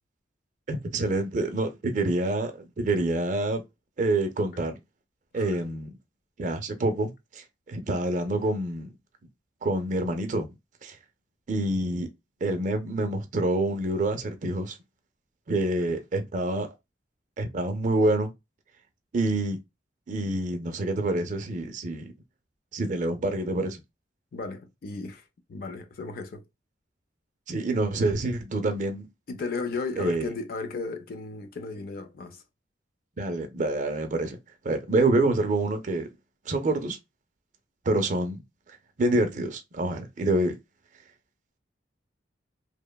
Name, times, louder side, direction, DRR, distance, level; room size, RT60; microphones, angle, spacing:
voice 1, 0.7-3.6 4.0-4.8 5.3-5.9 6.4-8.9 9.6-10.5 10.8-11.0 11.5-12.1 12.4-14.8 15.5-16.7 17.4-18.3 19.1-19.6 20.1-22.0 22.7-23.8 27.5-29.1 30.0-30.3 33.2-34.4 34.6-36.1 36.5-37.0 37.9-38.4 39.0-40.6, right 2 dB, 40° right, 0.4 m, -27 dB
voice 2, 24.3-25.2 25.5-26.4 29.3-32.4, left 3 dB, 50° left, 0.4 m, -35 dB
2.8 x 2.1 x 2.2 m
head